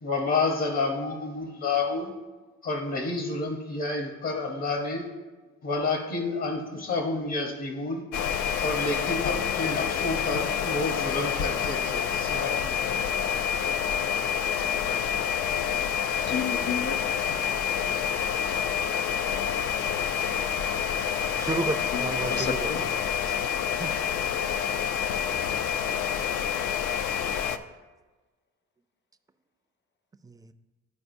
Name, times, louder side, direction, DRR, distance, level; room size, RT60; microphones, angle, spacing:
voice 1, 0.0-2.1 2.6-5.1 5.6-8.0 8.6-12.9, left 3 dB, 60° left, 1 dB, 1.1 m, -29 dB
sound 1, 8.1-27.6, left 8 dB, 80° left, 0.5 m, -28 dB
voice 2, 14.6-15.1 16.3-17.0 21.9-22.8, left 6 dB, 35° left, 9 dB, 0.6 m, -33 dB
voice 3, 21.4-22.9 23.2-23.5 23.8-23.9 30.2-30.5, right 3 dB, 10° right, 9 dB, 0.4 m, -33 dB
12.0 x 4.6 x 2.6 m, 1.2 s
cardioid pair, 90°, 30 cm